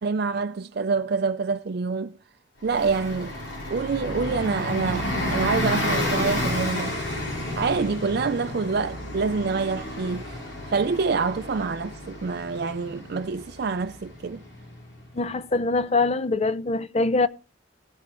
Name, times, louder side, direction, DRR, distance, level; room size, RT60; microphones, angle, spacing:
voice 1, 0.0-2.2 2.6-3.4 3.7-7.0 7.6-14.4, right 4 dB, 55° right, 0.4 m, -26 dB
Bus, 2.7-15.0, left 1 dB, 80° left, 5.1 m, -31 dB
voice 2, 15.1-17.3, left 3 dB, 35° left, 0.5 m, -23 dB
17.0 x 8.5 x 3.0 m
head